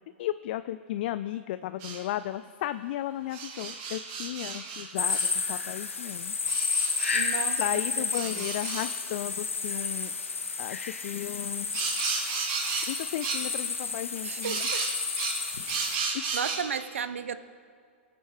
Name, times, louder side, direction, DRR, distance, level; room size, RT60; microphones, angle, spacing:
voice 1, 0.2-6.3 7.6-10.1 10.6-11.7 12.9-14.7 16.1-16.2, left 13 dB, 55° left, 13 dB, 0.3 m, -34 dB
sound 1, 1.8-2.0 3.3-5.3 6.4-7.2 8.1-8.9 11.7-12.9 13.2-13.4 14.4-16.6, right 5 dB, 45° right, 2.6 m, -33 dB
sound 2, 5.0-16.0, left 4 dB, 90° left, 1.1 m, -31 dB
voice 2, 7.1-7.6 8.2-8.5 14.2-14.9 16.0-17.4, right 7 dB, 80° right, 13 dB, 0.6 m, -34 dB
19.5 x 9.1 x 3.3 m, 2.1 s
hypercardioid pair, 115°, 7 cm